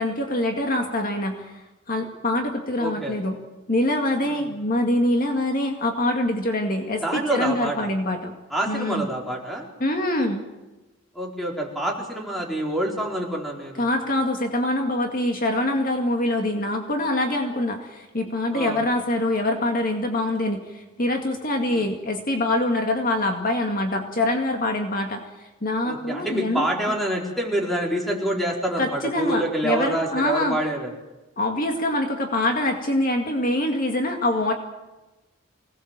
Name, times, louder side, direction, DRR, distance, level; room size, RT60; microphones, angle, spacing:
voice 1, 0.0-1.6 1.9-3.4 3.7-8.3 8.7-9.1 9.8-10.4 13.8-26.7 28.8-30.6 31.4-34.5, left 1 dB, 45° left, 3 dB, 2.2 m, -24 dB
voice 2, 2.8-3.1 4.2-4.4 7.0-7.9 8.5-9.7 11.1-13.9 18.5-18.8 21.7-21.8 25.8-30.9, right 1 dB, ahead, -1 dB, 4.5 m, -27 dB
25.0 x 19.0 x 7.6 m, 1.1 s
head